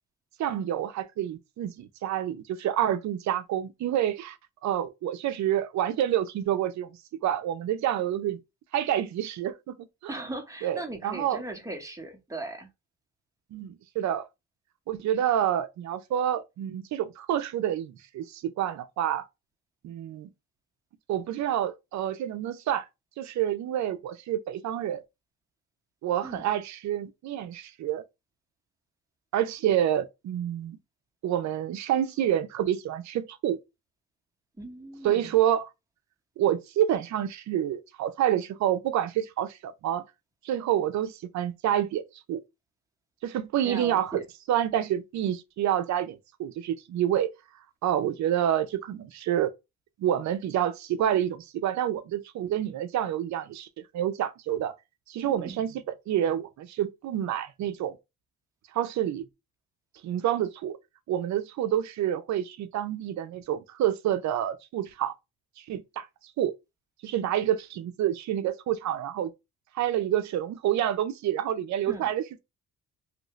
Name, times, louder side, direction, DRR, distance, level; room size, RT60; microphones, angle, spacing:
voice 1, 0.4-4.4 4.6-6.9 7.2-8.4 8.7-10.1 10.6-11.4 13.5-14.3 14.9-19.3 19.8-20.3 21.1-22.9 23.2-25.0 26.0-28.0 29.3-30.8 31.2-33.6 35.0-35.7 36.4-40.0 40.4-42.0 42.3-42.4 43.2-44.2 44.5-47.3 47.8-49.5 50.0-53.7 53.9-54.7 55.1-58.0 58.7-59.2 60.0-60.8 61.1-65.1 65.6-66.1 66.4-66.5 67.0-69.3 69.7-72.2, right 11 dB, 65° right, 0.5 m, -28 dB
voice 2, 10.1-12.7 26.2-26.5 34.6-35.3 43.6-44.2 55.3-55.6 71.9-72.1, right 2 dB, 10° right, 1.1 m, -38 dB
2.8 x 2.6 x 3.0 m
cardioid pair, 90°, 30 cm